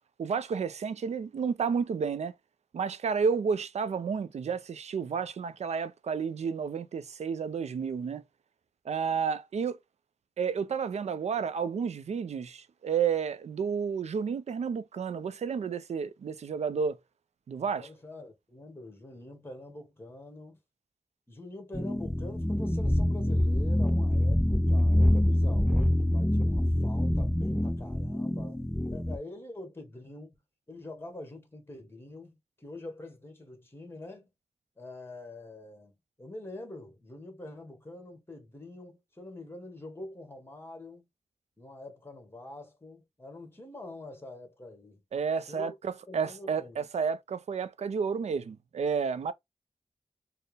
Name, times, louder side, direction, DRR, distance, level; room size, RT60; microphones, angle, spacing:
voice 1, 0.2-2.3 2.7-8.2 8.9-9.8 10.4-17.0 17.5-17.9 45.1-49.3, right 6 dB, 85° right, 0.4 m, -31 dB
voice 2, 17.8-20.6 21.3-28.6 28.9-30.3 30.7-34.3 34.8-41.0 41.6-45.0 45.5-45.8 46.1-46.8, left 2 dB, 20° left, 1.2 m, -45 dB
sound 1, 21.7-29.2, left 1 dB, 5° left, 0.3 m, -26 dB
4.3 x 2.0 x 3.2 m
wide cardioid pair, 100°, 11 cm